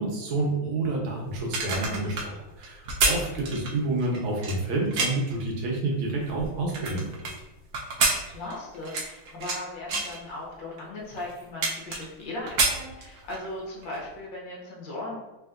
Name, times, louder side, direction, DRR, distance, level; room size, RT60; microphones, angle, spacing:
voice 1, 0.0-7.3, right 2 dB, 85° right, -1 dB, 1.7 m, -29 dB
sound 1, 1.3-5.3 5.9-7.3 7.7-9.6 9.9-10.2 10.8-10.9 11.2-12.2 12.5-13.5 13.8-14.0, right 3 dB, 65° right, 1.0 m, -28 dB
voice 2, 8.2-15.2, left 2 dB, 65° left, -4 dB, 1.7 m, -38 dB
4.3 x 3.3 x 2.4 m, 1.0 s
omnidirectional pair, 2.2 m